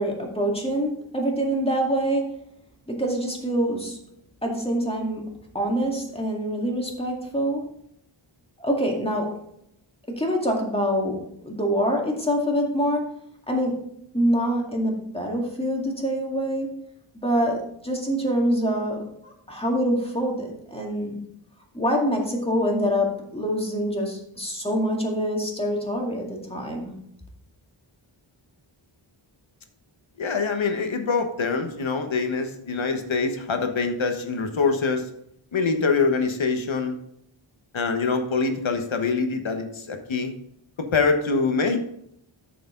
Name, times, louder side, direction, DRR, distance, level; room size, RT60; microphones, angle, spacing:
voice 1, 0.0-2.4 2.9-4.0 4.4-5.3 5.5-7.7 8.6-9.4 10.1-13.1 13.5-16.7 17.2-21.2 21.7-27.0, equal, 10° left, 0 dB, 2.2 m, -25 dB
voice 2, 30.2-35.1 35.5-37.0 37.7-40.3 40.8-41.8, left 4 dB, 70° left, 5 dB, 1.4 m, -24 dB
9.4 x 6.9 x 3.8 m, 0.74 s
wide cardioid pair, 90°, 49 cm